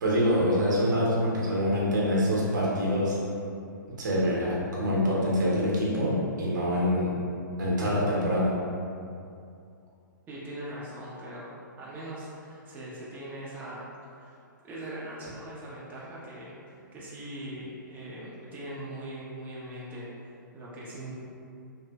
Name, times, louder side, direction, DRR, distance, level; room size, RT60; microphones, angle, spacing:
voice 1, 0.0-3.2 4.0-7.1 7.6-8.5, equal, 65° right, -5 dB, 0.8 m, -25 dB
voice 2, 10.3-13.8 14.1-14.4 14.6-21.1, right 1 dB, 15° right, -8 dB, 0.5 m, -41 dB
2.9 x 2.5 x 2.2 m, 2.5 s
figure-of-eight pair, 115°, 11 cm